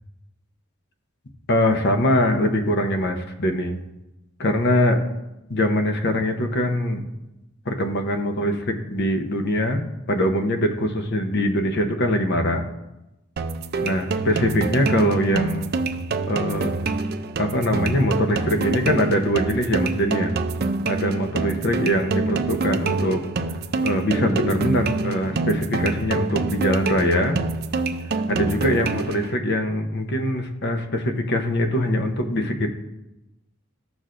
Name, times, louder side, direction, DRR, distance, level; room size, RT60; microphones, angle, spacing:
voice 1, 1.5-3.8 4.4-5.0 5.5-7.0 7.7-9.8 10.1-12.6 13.8-15.7 16.3-16.7 17.4-20.3 20.9-23.2 23.8-27.4 28.3-32.7, equal, 55° left, 5 dB, 0.8 m, -22 dB
sound 1, 13.4-29.4, right 3 dB, 50° right, 0.5 m, -26 dB
14.0 x 6.2 x 2.5 m, 0.94 s
head